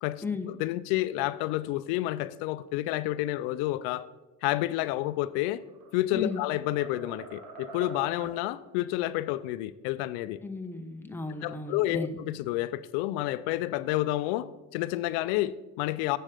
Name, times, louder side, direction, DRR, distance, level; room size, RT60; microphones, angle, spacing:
voice 1, 0.0-4.1 4.4-5.6 5.9-10.4 11.4-16.2, left 16 dB, 75° left, 15 dB, 0.5 m, -30 dB
sound 1, 5.4-5.9 6.3-8.4, right 3 dB, 60° right, 1.7 m, -45 dB
voice 2, 10.4-12.2, left 3 dB, 5° left, 6 dB, 0.9 m, -35 dB
7.7 x 7.4 x 5.0 m, 1.1 s
supercardioid pair, 95°, 36 cm